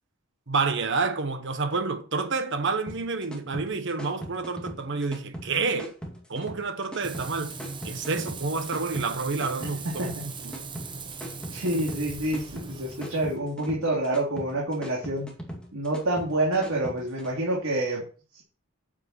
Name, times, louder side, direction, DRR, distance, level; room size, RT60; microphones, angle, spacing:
voice 1, 0.5-5.9 6.3-7.5 7.8-10.6, right 4 dB, 60° right, 1.3 m, -29 dB
sound 1, 2.9-17.3, equal, 5° left, 2.2 m, -40 dB
Frying (food), 7.0-13.4, right 4 dB, 25° right, 0.9 m, -39 dB
voice 2, 9.6-10.1 11.5-15.3 15.7-18.0 18.3-18.4, right 1 dB, 85° right, 2.7 m, -28 dB
8.8 x 7.8 x 4.3 m
head